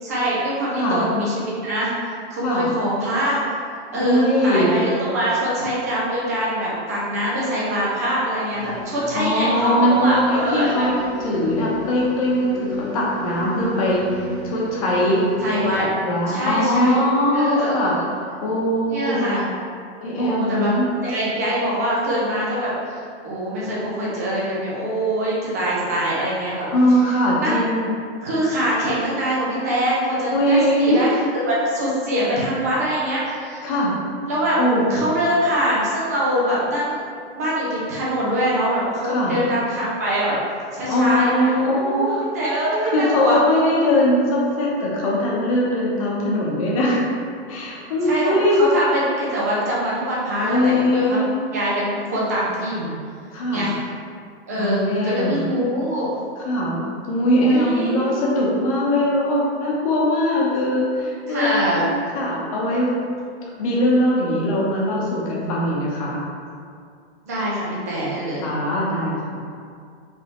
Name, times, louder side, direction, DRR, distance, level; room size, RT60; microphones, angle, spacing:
voice 1, 0.0-3.4 3.9-10.9 15.4-15.9 16.3-17.0 17.3-18.0 18.9-19.5 20.2-20.7 21.0-26.7 27.4-27.6 28.2-33.7 34.3-34.6 34.9-37.0 37.3-40.3 40.7-43.4 48.0-51.2 51.5-53.0 53.5-53.7 54.5-56.1 57.4-58.2 61.3-61.9 67.3-68.5, equal, 15° right, -6 dB, 0.4 m, -23 dB
voice 2, 3.9-4.7 9.1-15.3 15.5-18.0 18.4-19.3 20.0-20.9 26.7-28.0 30.3-31.1 33.6-33.9 34.6-34.8 39.0-39.3 40.9-42.2 42.8-47.0 47.5-48.6 50.4-51.3 53.3-53.6 54.6-55.5 56.4-56.8 57.1-61.7 62.1-62.9 63.6-66.2 68.4-69.4, left 1 dB, 30° left, -4 dB, 0.9 m, -21 dB
sound 1, 8.5-15.8, right 1 dB, ahead, 0.9 m, -34 dB
5.1 x 3.4 x 3.0 m, 2.2 s
hypercardioid pair, 175°, 33 cm